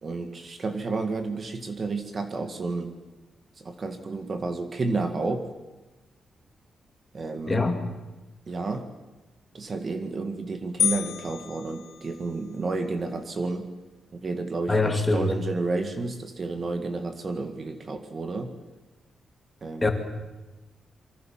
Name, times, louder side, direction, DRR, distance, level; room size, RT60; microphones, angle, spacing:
voice 1, 0.0-2.9 3.6-5.5 7.1-7.7 8.5-8.9 9.5-13.7 14.1-18.6 19.6-19.9, right 3 dB, 30° right, 7 dB, 1.8 m, -31 dB
voice 2, 7.5-7.8 14.7-15.3 19.8-19.9, left 3 dB, 15° left, 5 dB, 2.5 m, -23 dB
sound 1, 10.8-12.6, left 8 dB, 70° left, 1.6 m, -30 dB
27.5 x 24.0 x 7.4 m, 1.1 s
wide cardioid pair, 175°, 0 cm